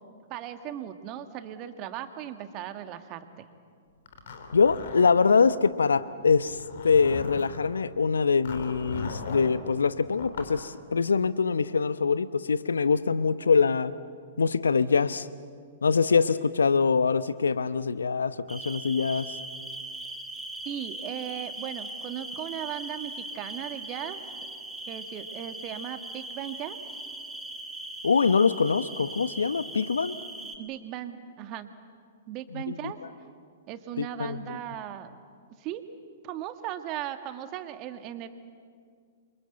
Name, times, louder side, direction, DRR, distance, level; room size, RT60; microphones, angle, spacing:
voice 1, 0.3-3.5 20.7-24.2 24.9-26.8 30.6-31.7 32.3-33.0 33.7-35.1 35.6-35.8 36.2-38.3, right 11 dB, 35° right, 9 dB, 1.8 m, -37 dB
Zipper (clothing), 4.1-5.6 6.4-7.6 8.4-9.6 10.1-10.5, left 4 dB, 60° left, 3.4 m, -38 dB
voice 2, 4.5-13.9 14.4-15.3 15.8-19.3 28.0-30.1 32.5-32.9 34.0-34.4, left 5 dB, 75° left, 15 dB, 0.9 m, -24 dB
sound 1, 18.5-30.6, right 2 dB, 5° right, 2.5 m, -40 dB
28.5 x 25.0 x 8.1 m, 2.1 s
figure-of-eight pair, 110°, 0 cm